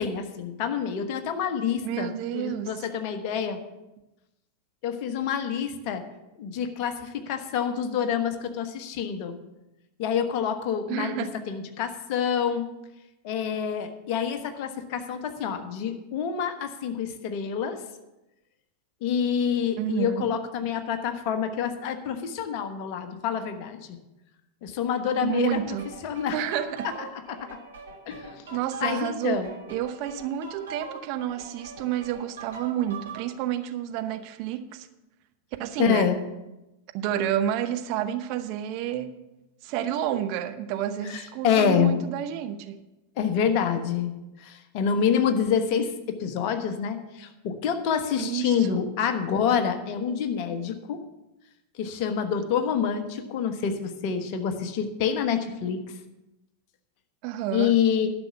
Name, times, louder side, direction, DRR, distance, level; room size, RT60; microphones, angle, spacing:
voice 1, 0.0-3.6 4.8-6.0 6.4-9.4 10.0-12.7 13.2-17.8 19.0-24.0 24.6-25.8 26.0-26.4 27.1-27.5 28.1-28.4 28.8-29.5 35.8-36.2 41.0-42.0 43.2-51.0 51.8-55.8 57.5-58.1, left 7 dB, 45° left, 7 dB, 1.2 m, -27 dB
voice 2, 1.8-2.9 10.9-11.4 19.8-20.3 25.2-25.9 26.3-26.9 28.5-34.9 35.6-36.1 36.9-39.1 39.6-42.8 48.2-48.9 57.2-57.7, right 10 dB, 45° right, 8 dB, 0.8 m, -30 dB
sound 1, 25.5-33.3, right 4 dB, 65° right, 1.7 m, -42 dB
12.0 x 6.2 x 6.9 m, 0.96 s
figure-of-eight pair, 90°, 0 cm